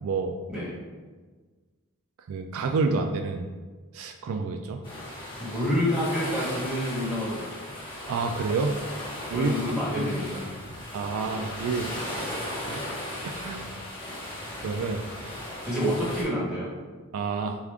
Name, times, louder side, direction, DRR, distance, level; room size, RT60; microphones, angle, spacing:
voice 1, 0.0-0.3 2.3-3.5 3.9-4.8 8.1-8.8 9.3-9.5 9.9-10.1 10.9-12.9 13.2-13.6 14.6-15.0 17.1-17.6, right 4 dB, 70° right, 5 dB, 0.3 m, -29 dB
sound 1, 4.8-16.2, left 1 dB, 20° left, 1.0 m, -36 dB
voice 2, 5.4-7.7 9.3-10.5 15.6-16.7, equal, 5° right, -8 dB, 1.3 m, -28 dB
4.9 x 2.4 x 3.4 m, 1.4 s
head